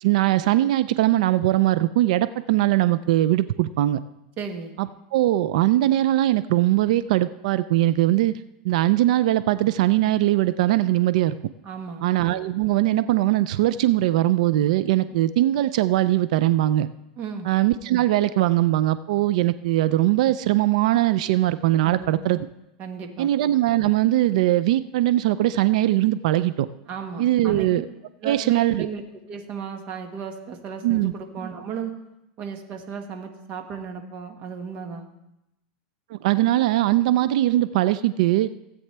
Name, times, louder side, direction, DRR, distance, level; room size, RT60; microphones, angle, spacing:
voice 1, 0.0-4.0 4.8-8.3 8.6-11.4 12.0-16.9 17.5-22.5 23.2-26.7 27.2-27.9 28.2-28.9 30.8-31.1 36.1-38.5, right 14 dB, 65° right, 14 dB, 0.4 m, -21 dB
voice 2, 4.4-4.8 11.6-12.0 17.2-17.5 21.8-22.1 22.8-23.3 26.9-27.7 28.2-29.0 29.3-31.9 32.4-35.1, right 6 dB, 40° right, 4 dB, 1.6 m, -34 dB
16.5 x 8.5 x 3.4 m, 0.90 s
supercardioid pair, 145°, 4 cm